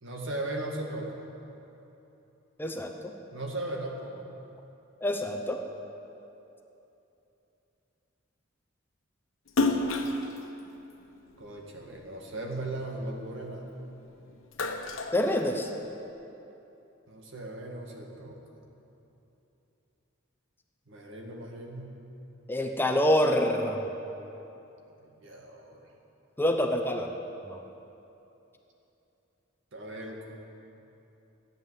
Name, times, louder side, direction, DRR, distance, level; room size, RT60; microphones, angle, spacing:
voice 1, 0.0-1.2 3.3-4.1 11.4-13.8 17.1-18.4 20.9-22.0 25.0-25.9 29.7-30.4, right 1 dB, 65° right, 0 dB, 1.9 m, -38 dB
voice 2, 2.6-2.9 5.0-5.6 15.1-15.7 22.5-23.9 26.4-27.1 27.4-27.6, left 1 dB, 10° left, 2 dB, 0.7 m, -26 dB
Splash splatter, 9.5-12.0 12.5-13.9 14.3-16.0, left 2 dB, 75° left, 1.1 m, -31 dB
14.0 x 9.1 x 7.5 m, 3.0 s
head